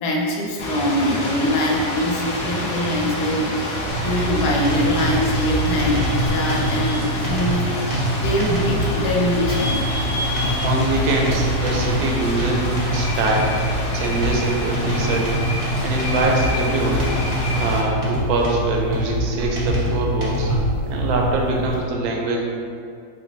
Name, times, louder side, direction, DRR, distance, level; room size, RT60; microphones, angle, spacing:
voice 1, 0.0-3.5 4.0-7.6 8.2-10.7 13.0-13.2, equal, 85° left, -1 dB, 1.2 m, -23 dB
sound 1, 0.6-17.8, left 1 dB, 50° left, 0.8 m, -28 dB
sound 2, 3.9-21.8, equal, 30° right, 0.7 m, -24 dB
voice 2, 10.6-13.5 13.9-15.3 15.8-17.1 17.6-20.5 20.9-22.4, right 2 dB, 75° right, 0 dB, 1.1 m, -23 dB
sound 3, 18.1-18.6, equal, 5° left, 0.7 m, -37 dB
4.3 x 2.2 x 4.0 m, 2.4 s
omnidirectional pair, 1.6 m